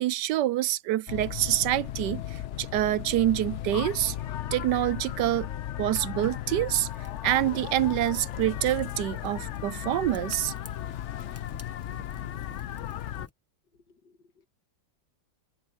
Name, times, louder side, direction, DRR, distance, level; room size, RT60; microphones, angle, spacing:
voice 1, 0.0-4.1 4.5-5.5 5.8-6.9 7.2-10.5, right 14 dB, 75° right, 1.2 m, -26 dB
sound 1, 1.1-13.3, left 12 dB, 85° left, 0.6 m, -36 dB
Fire, 6.8-13.3, left 2 dB, 15° left, 0.4 m, -51 dB
voice 2, 13.7-14.5, left 4 dB, 65° left, 2.5 m, -62 dB
open air
omnidirectional pair, 2.0 m